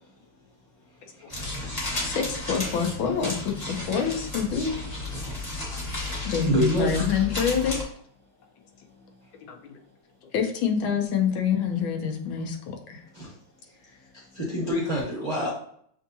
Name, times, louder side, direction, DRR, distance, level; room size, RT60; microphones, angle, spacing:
voice 1, 0.0-2.2 5.1-6.3 8.2-10.3 12.4-12.5 12.9-14.4, left 3 dB, 55° left, -4 dB, 1.1 m, -59 dB
sound 1, 1.3-7.8, left 2 dB, 25° left, 1.0 m, -33 dB
voice 2, 2.0-4.7 6.3-7.9 9.5-9.8 10.3-13.0, left 7 dB, 80° left, 3 dB, 1.6 m, -26 dB
voice 3, 5.9-6.9 13.1-13.3 14.1-15.5, equal, 55° right, -5 dB, 0.4 m, -28 dB
7.1 x 2.7 x 2.7 m, 0.64 s
omnidirectional pair, 2.2 m